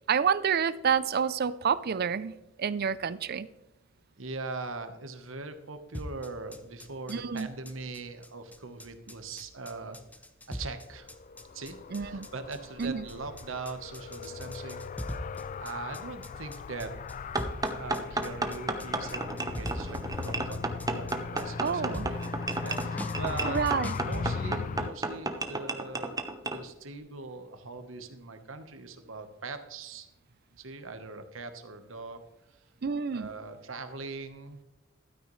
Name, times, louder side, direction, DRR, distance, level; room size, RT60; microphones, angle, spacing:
voice 1, 0.1-2.3 2.6-3.5 7.1-7.5 11.9-12.3 12.8-13.1 21.6-22.1 23.4-24.0 32.8-33.3, right 6 dB, 50° right, 17 dB, 0.5 m, -28 dB
voice 2, 4.2-10.0 10.5-11.1 11.5-15.0 15.6-16.9 17.8-22.2 22.5-23.6 24.0-26.2 26.4-30.1 30.6-32.2 32.5-32.6 33.1-34.6, right 3 dB, 85° right, 8 dB, 1.2 m, -41 dB
sound 1, 5.9-24.2, equal, 10° left, 0.8 m, -42 dB
Car, 10.9-24.9, left 5 dB, 40° left, 0.3 m, -39 dB
sound 2, 17.3-26.6, right 2 dB, 20° right, 0.9 m, -33 dB
12.5 x 9.3 x 3.2 m, 0.97 s
head